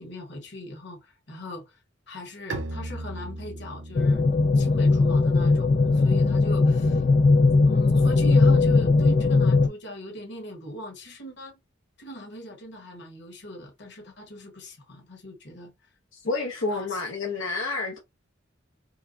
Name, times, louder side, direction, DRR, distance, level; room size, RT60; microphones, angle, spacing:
voice 1, 0.0-1.8 2.1-4.3 4.5-7.0 7.7-11.5 12.0-15.7 16.7-17.0, left 1 dB, 60° left, 1.3 m, -40 dB
Bowed string instrument, 2.5-8.1, right 2 dB, 65° right, 0.7 m, -40 dB
sound 1, 3.9-9.7, left 3 dB, 40° left, 0.3 m, -19 dB
voice 2, 16.2-18.0, left 3 dB, 85° left, 0.8 m, -29 dB
4.6 x 2.2 x 2.5 m
head